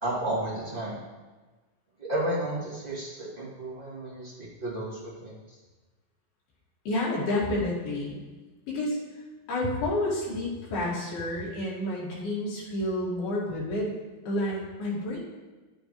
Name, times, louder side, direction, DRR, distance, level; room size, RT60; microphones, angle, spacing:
voice 1, 0.0-1.0 2.0-5.6, right 1 dB, 15° right, -10 dB, 1.9 m, -32 dB
voice 2, 6.9-8.2 8.7-9.2 9.5-13.9 14.3-15.2, left 1 dB, 80° left, -6 dB, 4.1 m, -30 dB
10.5 x 8.9 x 3.2 m, 1.3 s
omnidirectional pair, 4.3 m